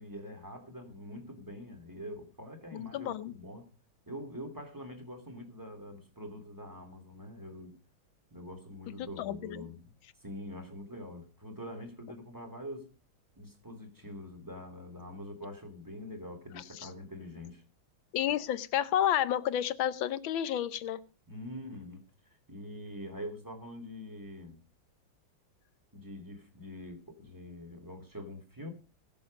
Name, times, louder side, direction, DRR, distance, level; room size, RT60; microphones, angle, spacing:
voice 1, 0.0-3.7 4.1-7.8 8.3-9.9 10.2-12.9 13.4-17.6 21.3-24.6 25.9-28.7, left 1 dB, 10° right, 2.6 m, -44 dB
voice 2, 2.7-3.3 9.2-9.7 16.8-16.9 18.1-21.0, left 11 dB, 75° left, 1.6 m, -31 dB
20.5 x 7.0 x 5.3 m
omnidirectional pair, 2.2 m